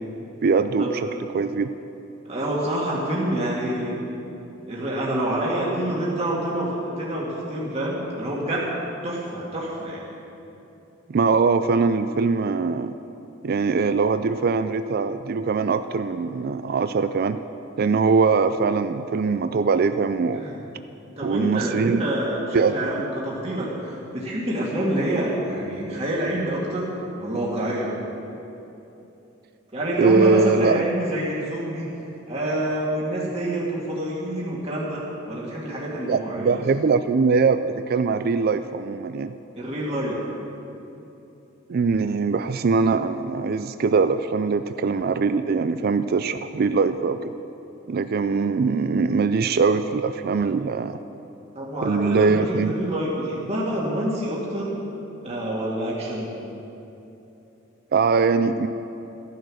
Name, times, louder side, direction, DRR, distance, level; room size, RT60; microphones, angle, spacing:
voice 1, 0.4-1.1 1.3-1.7 11.1-12.9 13.4-17.4 17.8-20.4 21.2-22.0 22.5-22.7 30.0-30.8 36.1-39.3 41.7-47.3 47.9-51.0 51.8-52.7 57.9-58.7, right 4 dB, 50° right, 11 dB, 0.4 m, -22 dB
voice 2, 2.2-4.1 4.7-8.7 9.0-10.0 20.4-20.6 21.2-28.0 29.7-31.9 32.3-36.6 39.6-40.2 51.5-54.8 55.2-56.3, right 1 dB, 30° right, -5 dB, 2.1 m, -27 dB
14.0 x 10.5 x 6.3 m, 2.9 s
head